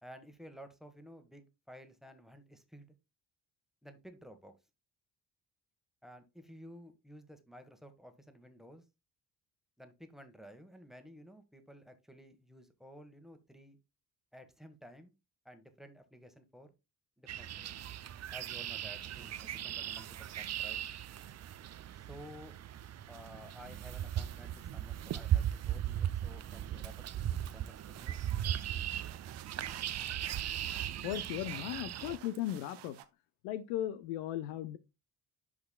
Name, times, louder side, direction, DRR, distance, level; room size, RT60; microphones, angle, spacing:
voice 1, 0.0-2.9 3.8-4.5 6.0-8.8 9.8-13.8 14.3-15.1 15.4-16.7 17.2-17.7 18.3-20.8 21.9-22.6 23.1-27.3 27.5-28.2, equal, ahead, 1.3 m, -53 dB
sound 1, 17.3-32.2, right 11 dB, 35° right, 0.6 m, -38 dB
sound 2, 26.8-33.0, right 12 dB, 55° right, 0.9 m, -54 dB
voice 2, 31.0-33.0 33.4-34.8, left 12 dB, 65° left, 0.6 m, -37 dB
11.0 x 4.7 x 2.2 m
figure-of-eight pair, 45°, 50 cm